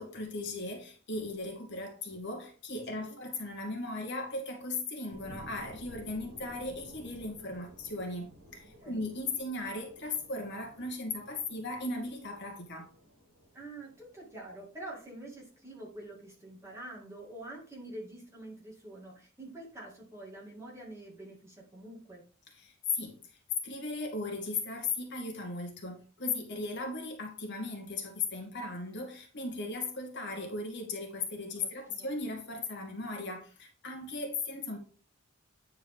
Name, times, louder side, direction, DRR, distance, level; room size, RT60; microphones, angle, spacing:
voice 1, 0.0-12.9 22.5-34.8, left 3 dB, 55° left, 2.0 m, -37 dB
sound 1, 5.1-16.1 16.6-16.7, equal, 85° right, 2.0 m, -54 dB
voice 2, 13.5-22.2 31.6-32.1, right 1 dB, 15° right, 2.4 m, -46 dB
9.4 x 4.5 x 3.7 m
head